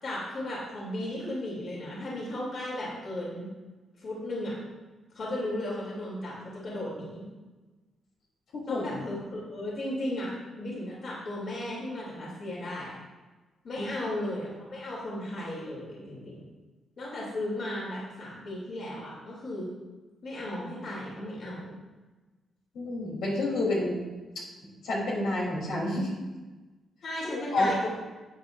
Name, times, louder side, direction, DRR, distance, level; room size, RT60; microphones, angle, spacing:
voice 1, 0.0-3.5 4.0-4.6 5.1-7.2 8.7-12.9 13.6-16.4 17.0-19.7 20.2-21.8 27.0-27.9, left 1 dB, 50° left, -5 dB, 3.1 m, -35 dB
voice 2, 8.5-8.9 22.7-24.0 24.8-26.1 27.3-27.9, left 1 dB, 80° left, -4 dB, 3.5 m, -29 dB
13.0 x 9.0 x 2.7 m, 1.2 s
wide cardioid pair, 155°, 0 cm